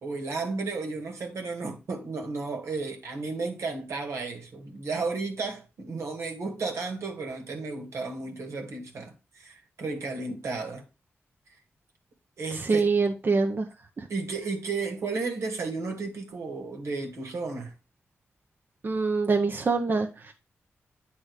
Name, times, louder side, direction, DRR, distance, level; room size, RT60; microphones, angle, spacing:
voice 1, 0.0-10.8 12.4-12.9 14.1-17.7, right 3 dB, 80° right, 2.0 m, -33 dB
voice 2, 12.7-13.6 18.8-20.3, right 4 dB, 45° right, 0.9 m, -24 dB
8.6 x 4.1 x 4.8 m
wide cardioid pair, 100°, 5 cm